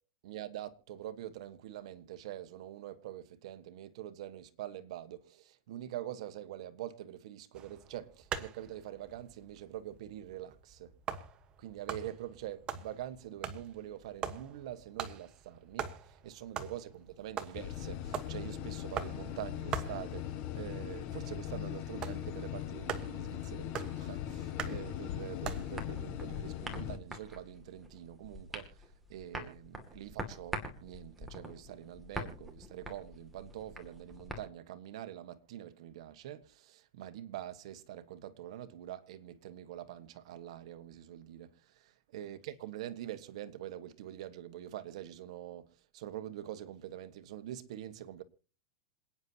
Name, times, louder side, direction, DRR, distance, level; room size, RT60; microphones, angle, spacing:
voice 1, 0.2-10.9 11.6-28.8 29.1-45.7 45.9-48.2, right 12 dB, 70° right, 1.4 m, -45 dB
sound 1, 7.5-25.7, right 7 dB, 25° right, 1.3 m, -44 dB
sound 2, 17.5-27.0, left 11 dB, 45° left, 1.7 m, -40 dB
sound 3, 25.7-34.4, equal, 5° right, 2.4 m, -45 dB
27.5 x 9.7 x 2.9 m
supercardioid pair, 150°, 3 cm